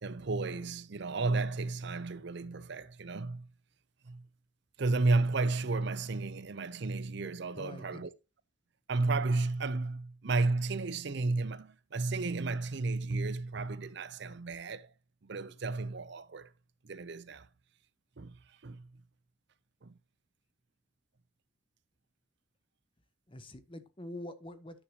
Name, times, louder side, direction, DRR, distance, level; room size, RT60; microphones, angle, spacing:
voice 1, 0.0-3.5 4.0-4.2 4.8-8.1 8.9-14.9 15.2-16.5 16.8-17.5 18.2-18.9 19.8-19.9, right 3 dB, 55° right, 0.6 m, -33 dB
voice 2, 7.6-8.0 23.3-24.8, left 1 dB, 25° left, 0.9 m, -45 dB
9.9 x 6.6 x 2.9 m
head